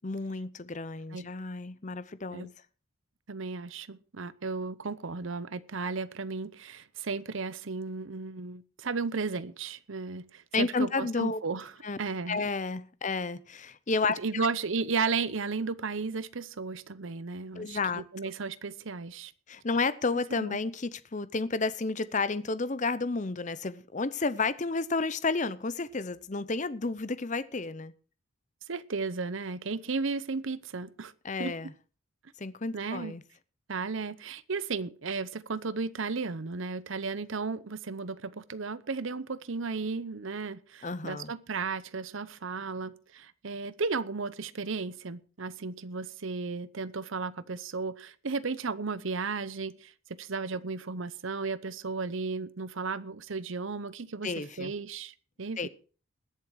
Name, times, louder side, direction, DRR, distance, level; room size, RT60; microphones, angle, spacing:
voice 1, 0.0-2.5 10.5-11.4 11.8-12.0 12.3-14.5 17.5-18.0 19.5-27.9 31.2-31.7 32.4-33.2 40.8-41.3 54.2-54.7 55.6-55.7, left 3 dB, 35° left, 0.7 m, -31 dB
voice 2, 3.3-11.7 12.0-12.4 14.2-19.3 20.4-20.6 28.7-31.1 31.4-31.6 32.7-33.2 33.7-55.7, right 4 dB, 65° right, 0.8 m, -34 dB
20.5 x 7.4 x 4.7 m
head